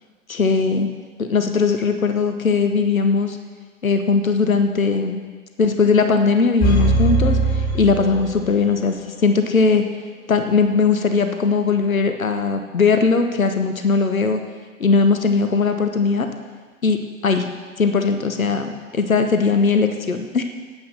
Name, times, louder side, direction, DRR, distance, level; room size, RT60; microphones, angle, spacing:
voice 1, 0.3-0.9 1.2-3.4 3.8-5.2 5.6-9.8 10.3-14.4 14.8-16.3 16.8-20.4, left 4 dB, 90° left, 7 dB, 1.0 m, -19 dB
sound 1, 6.6-8.8 9.1-9.2, right 2 dB, 35° left, 3.9 m, -20 dB
9.4 x 9.2 x 6.7 m, 1.5 s
figure-of-eight pair, 100°, 40 cm